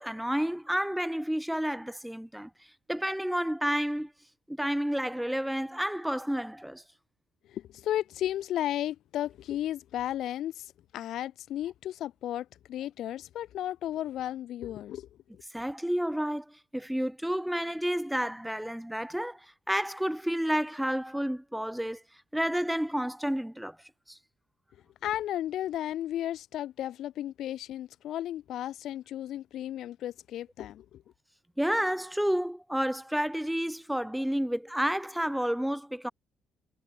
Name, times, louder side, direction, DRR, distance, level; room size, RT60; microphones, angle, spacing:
voice 1, 0.0-2.5 2.9-4.1 4.5-6.8 15.5-22.0 22.3-23.8 24.1-24.2 31.6-36.1, equal, ahead, 0.4 m, -30 dB
voice 2, 7.5-15.1 15.3-15.4 25.0-31.0, left 12 dB, 70° left, 1.3 m, -34 dB
cardioid pair, 120°, 0 cm